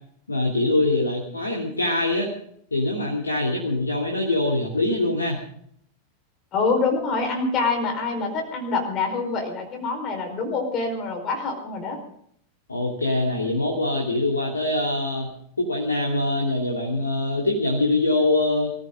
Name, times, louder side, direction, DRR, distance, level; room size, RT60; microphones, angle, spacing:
voice 1, 0.3-2.3 2.7-5.4 12.7-15.3 15.6-18.7, left 2 dB, 75° left, -2 dB, 3.0 m, -23 dB
voice 2, 6.5-12.0, left 4 dB, 35° left, 3 dB, 4.8 m, -25 dB
23.5 x 15.0 x 3.8 m, 0.66 s
figure-of-eight pair, 90°, 0 cm